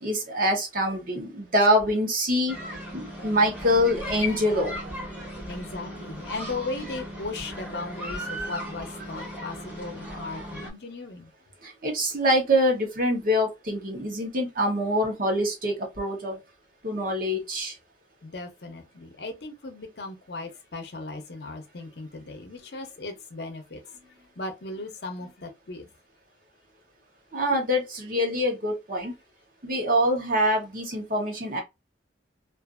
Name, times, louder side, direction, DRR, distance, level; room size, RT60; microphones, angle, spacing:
voice 1, 0.0-2.5 2.9-4.8 11.8-16.4 16.8-17.7 27.3-29.1 29.6-31.6, equal, 50° right, 0.9 m, -25 dB
sound 1, 2.5-10.7, left 1 dB, 10° right, 0.8 m, -37 dB
voice 2, 5.5-11.3 18.2-23.9 24.4-25.9 29.0-29.1, left 3 dB, 60° left, 0.7 m, -37 dB
2.5 x 2.5 x 2.4 m
head